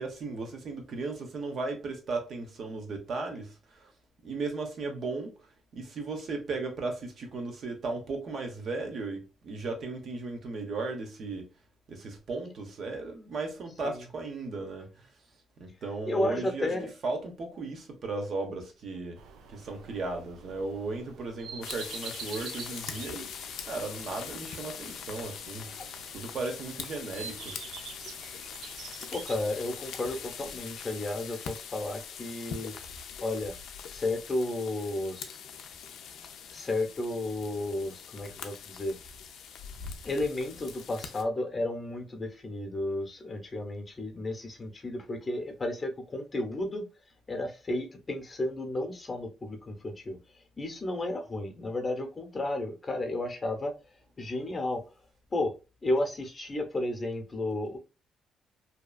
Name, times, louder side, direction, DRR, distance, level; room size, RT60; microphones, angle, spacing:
voice 1, 0.0-3.9 4.2-11.5 11.9-15.1 15.6-19.2 19.5-23.3 23.6-27.6, right 3 dB, 60° right, 0.8 m, -36 dB
voice 2, 16.1-16.9 29.1-32.7 33.2-33.5 33.9-35.4 36.5-39.0 40.0-46.9 47.3-50.2 50.6-53.7 54.2-54.8 55.3-55.5 55.8-57.8, left 2 dB, 30° left, 0.7 m, -32 dB
sound 1, 19.2-29.8, right 6 dB, 85° right, 0.4 m, -47 dB
sound 2, 21.6-41.2, left 7 dB, 80° left, 0.4 m, -42 dB
2.8 x 2.3 x 2.3 m
cardioid pair, 90°, 0 cm